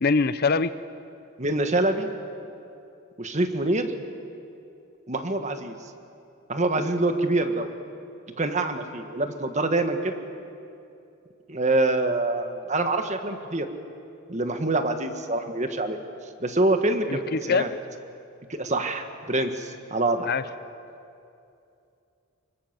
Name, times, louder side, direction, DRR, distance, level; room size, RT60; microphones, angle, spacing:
voice 1, 0.0-0.7 17.1-17.8 20.3-20.4, left 4 dB, 45° left, 14 dB, 0.6 m, -23 dB
voice 2, 1.4-2.1 3.2-3.9 5.1-5.7 6.5-7.7 8.4-10.1 11.5-13.7 14.3-16.0 16.4-17.7 18.5-20.3, right 2 dB, 35° right, 7 dB, 1.6 m, -25 dB
25.5 x 24.0 x 7.5 m, 2.6 s
head